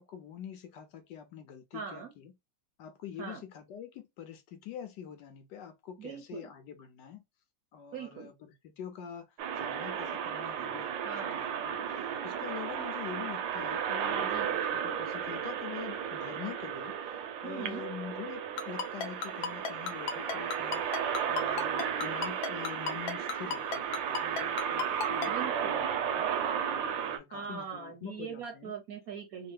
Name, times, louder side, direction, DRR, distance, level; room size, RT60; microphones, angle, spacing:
voice 1, 0.0-2.3 2.8-7.2 7.7-9.3 9.6-10.9 11.4-14.3 14.8-17.0 17.4-20.8 21.3-26.2 26.7-28.7, left 9 dB, 70° left, 1.3 m, -45 dB
voice 2, 1.7-2.1 3.2-3.4 6.0-6.5 7.9-8.3 11.0-11.4 14.2-14.6 17.4-17.9 25.2-25.9 27.3-29.5, right 7 dB, 65° right, 1.0 m, -41 dB
sound 1, 9.4-27.2, right 8 dB, 80° right, 1.4 m, -34 dB
Ringtone, 18.6-25.3, left 6 dB, 90° left, 1.4 m, -33 dB
3.5 x 2.1 x 3.2 m
omnidirectional pair, 2.0 m